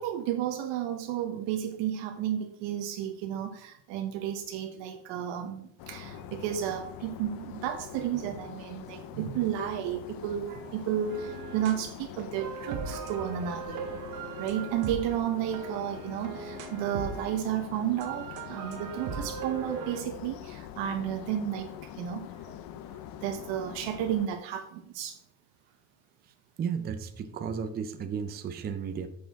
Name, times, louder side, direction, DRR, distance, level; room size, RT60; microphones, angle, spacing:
voice 1, 0.0-13.9 14.4-22.6 22.9-25.2, right 10 dB, 85° right, 5 dB, 1.0 m, -32 dB
sound 1, 5.8-24.3, left 11 dB, 55° left, 0.5 m, -44 dB
sound 2, 11.1-11.9 12.2-17.5 18.0-20.0, right 6 dB, 45° right, 1.0 m, -39 dB
voice 2, 26.6-29.1, right 6 dB, 25° right, 8 dB, 0.5 m, -34 dB
8.6 x 6.5 x 3.5 m, 0.73 s
cardioid pair, 165°, 43 cm